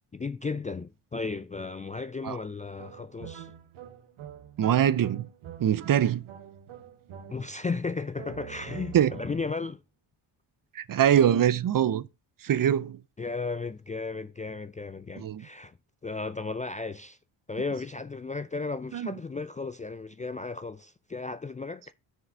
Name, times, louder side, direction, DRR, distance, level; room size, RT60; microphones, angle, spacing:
voice 1, 0.1-3.5 7.3-9.8 13.2-15.7 16.0-17.2 17.5-21.9, left 4 dB, 15° left, 0.4 m, -35 dB
sound 1, 2.8-7.7 8.1-9.7, right 9 dB, 75° right, 1.3 m, -45 dB
voice 2, 4.6-5.3 5.6-6.2 8.9-9.1 10.7-12.1 12.4-13.0 15.2-15.4 18.9-19.1, right 10 dB, 45° right, 0.6 m, -23 dB
6.6 x 4.7 x 5.6 m
supercardioid pair, 55°, 50 cm